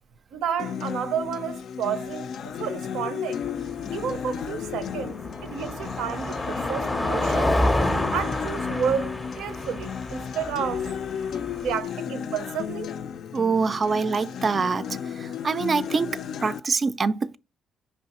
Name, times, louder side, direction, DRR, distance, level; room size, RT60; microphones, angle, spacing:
voice 1, 0.3-3.4 3.9-7.6 8.1-10.9 11.6-12.9, right 8 dB, 90° right, 0.5 m, -31 dB
Acoustic guitar, 0.6-16.6, left 8 dB, 70° left, 0.3 m, -34 dB
Car passing by, 3.4-11.7, left 1 dB, 15° left, 0.5 m, -29 dB
voice 2, 13.3-17.4, right 4 dB, 40° right, 0.3 m, -25 dB
5.4 x 3.1 x 2.9 m
cardioid pair, 90°, 0 cm